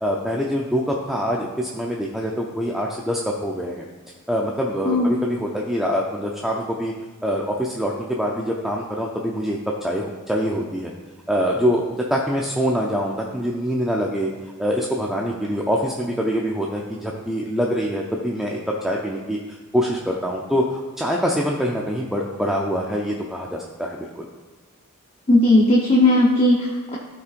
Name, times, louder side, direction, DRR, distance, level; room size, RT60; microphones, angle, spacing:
voice 1, 0.0-3.9 4.3-6.9 7.2-10.9 11.3-14.3 14.6-24.3, equal, ahead, -2 dB, 0.6 m, -24 dB
voice 2, 25.3-27.0, left 1 dB, 30° left, -3 dB, 1.0 m, -17 dB
15.5 x 5.8 x 2.5 m, 1.3 s
head